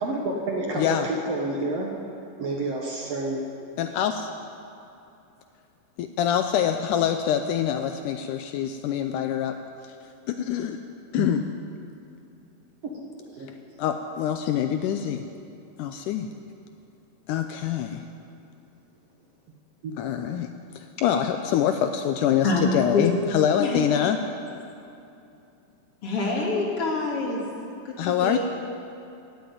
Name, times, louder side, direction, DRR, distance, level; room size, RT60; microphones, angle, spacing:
voice 1, 0.0-1.9 2.4-3.4 11.2-11.3 13.3-13.5 19.8-19.9, right 2 dB, 60° right, 0 dB, 1.9 m, -29 dB
voice 2, 0.8-1.1 3.8-4.3 6.0-9.6 10.3-10.8 11.1-11.4 13.8-15.2 15.8-16.3 17.3-18.0 20.0-20.5 20.8-24.2 28.0-28.4, left 9 dB, 80° left, 7 dB, 2.0 m, -25 dB
voice 3, 26.0-27.4 27.8-28.4, left 3 dB, 45° left, -2 dB, 2.7 m, -26 dB
16.0 x 8.0 x 9.2 m, 2.7 s
omnidirectional pair, 4.0 m